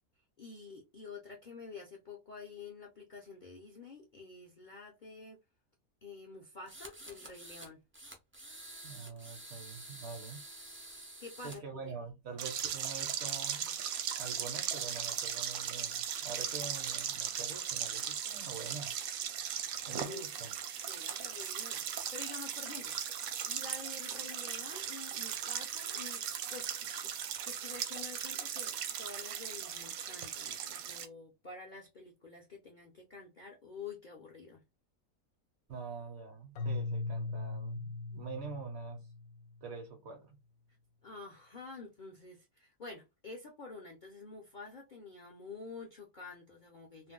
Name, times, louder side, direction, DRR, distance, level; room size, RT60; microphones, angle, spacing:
voice 1, 0.4-5.4 6.0-7.8 11.2-11.9 19.9-20.3 20.9-23.2 23.4-26.2 26.5-34.6 41.0-47.1, left 4 dB, 45° left, 0.6 m, -49 dB
sound 1, 6.7-7.7 7.9-11.6, right 1 dB, 20° right, 0.3 m, -49 dB
voice 2, 8.8-10.4 11.4-13.8 14.1-19.0 19.9-20.5 35.7-39.1 39.6-40.4, right 5 dB, 55° right, 0.9 m, -45 dB
sound 2, 12.4-31.1, right 8 dB, 80° right, 1.0 m, -38 dB
Keyboard (musical), 36.6-39.7, left 3 dB, 70° left, 1.0 m, -39 dB
2.5 x 2.2 x 3.6 m
omnidirectional pair, 1.5 m